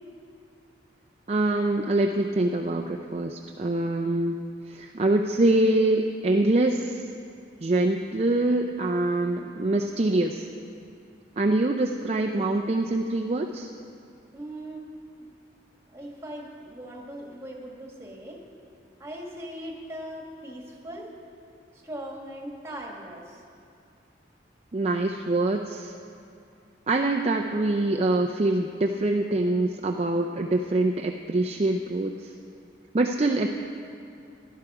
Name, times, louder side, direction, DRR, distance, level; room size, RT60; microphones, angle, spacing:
voice 1, 1.3-7.1 7.6-10.5 11.4-13.7 24.7-25.9 26.9-32.3 32.9-33.5, right 2 dB, 35° right, 2 dB, 0.5 m, -24 dB
voice 2, 14.3-14.9 15.9-18.4 19.0-21.1 21.7-23.4, right 1 dB, 15° right, 0 dB, 1.6 m, -39 dB
16.5 x 11.0 x 4.8 m, 2.6 s
head